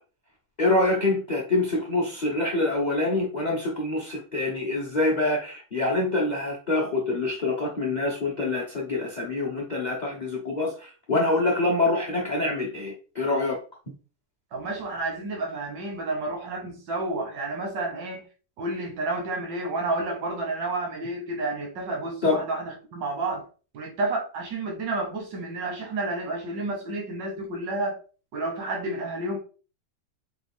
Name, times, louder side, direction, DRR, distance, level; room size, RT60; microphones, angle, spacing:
voice 1, 0.6-13.6 22.2-22.4, left 2 dB, 55° left, -1 dB, 0.5 m, -25 dB
voice 2, 14.5-18.2 18.6-23.5 23.7-28.0 28.3-29.4, right 2 dB, 90° right, 1 dB, 1.6 m, -30 dB
4.7 x 2.3 x 3.5 m, 0.36 s
omnidirectional pair, 1.9 m